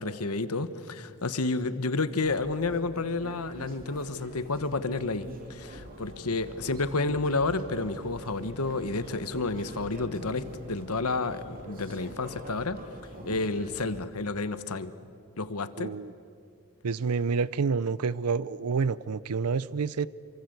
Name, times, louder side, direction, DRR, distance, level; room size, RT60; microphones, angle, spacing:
voice 1, 0.0-12.8 13.2-14.9 15.4-15.9, left 3 dB, 80° left, 12 dB, 1.3 m, -30 dB
sound 1, 2.2-14.0, right 1 dB, 40° right, 3.4 m, -46 dB
sound 2, 5.7-12.7, left 1 dB, 70° right, 5.1 m, -50 dB
voice 2, 15.8-16.1 16.8-20.1, right 5 dB, 85° right, 19 dB, 0.6 m, -28 dB
27.5 x 25.5 x 8.0 m, 2.3 s
head